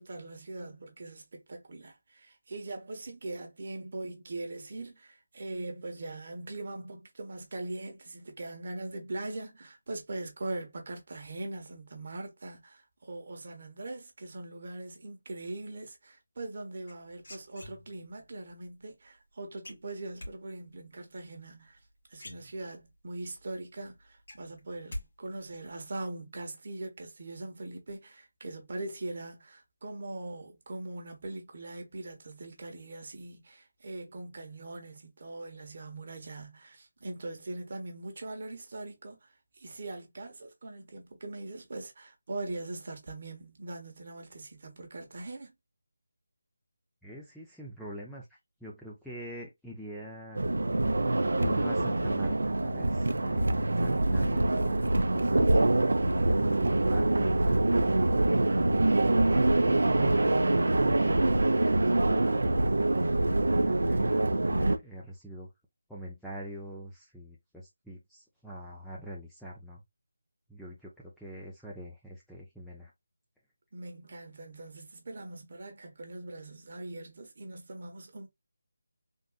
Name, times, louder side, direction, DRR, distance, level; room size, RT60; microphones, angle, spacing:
voice 1, 0.0-21.8 22.1-45.5 73.7-78.3, right 2 dB, 45° right, 1.0 m, -41 dB
sound 1, 16.9-18.2 19.6-20.3 21.7-21.8 22.1-23.0 23.4-23.5 23.8-25.1 25.3-25.8, left 1 dB, 55° left, 1.7 m, -44 dB
voice 2, 47.0-48.3 48.6-50.4 51.3-54.8 55.1-55.6 56.1-57.4 63.1-65.5 65.9-69.8 70.5-72.9, right 1 dB, ahead, 0.4 m, -44 dB
sound 2, 50.3-64.8, right 2 dB, 80° right, 0.5 m, -25 dB
3.6 x 2.5 x 2.3 m
figure-of-eight pair, 170°, 0 cm